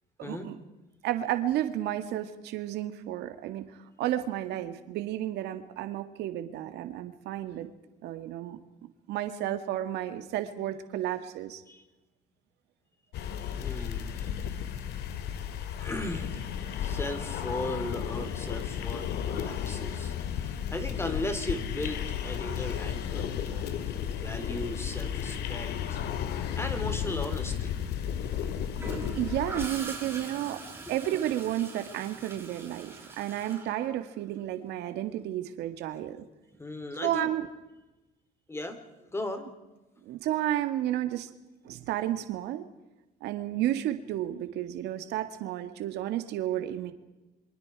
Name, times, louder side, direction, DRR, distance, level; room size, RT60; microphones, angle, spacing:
voice 1, 0.2-0.6 1.0-7.7 8.0-8.6 9.1-11.6 13.5-13.6 29.1-36.3 37.0-37.5 40.0-41.3 41.6-42.7 43.2-46.9, right 12 dB, 85° right, 9 dB, 2.0 m, -32 dB
sound 1, 13.1-29.7, left 9 dB, 75° left, 2.4 m, -33 dB
voice 2, 13.5-14.3 15.8-26.0 26.6-27.7 30.9-31.0 36.6-37.3 38.5-39.5, left 1 dB, 15° left, 7 dB, 3.8 m, -37 dB
Gurgling / Toilet flush, 28.8-34.5 36.5-36.8, right 3 dB, 15° right, 6.4 m, -43 dB
28.5 x 24.5 x 4.8 m, 1.0 s
cardioid pair, 110°, 17 cm